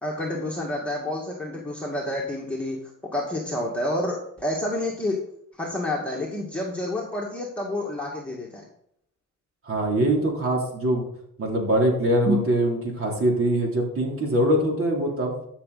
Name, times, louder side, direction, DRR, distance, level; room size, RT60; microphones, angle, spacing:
voice 1, 0.0-2.8 3.1-5.2 5.6-8.6 12.2-12.4, left 1 dB, 5° left, -3 dB, 2.0 m, -28 dB
voice 2, 9.6-11.1 11.4-15.4, right 1 dB, 45° right, -1 dB, 3.4 m, -23 dB
13.0 x 6.3 x 4.2 m, 0.70 s
cardioid pair, 90°, 30 cm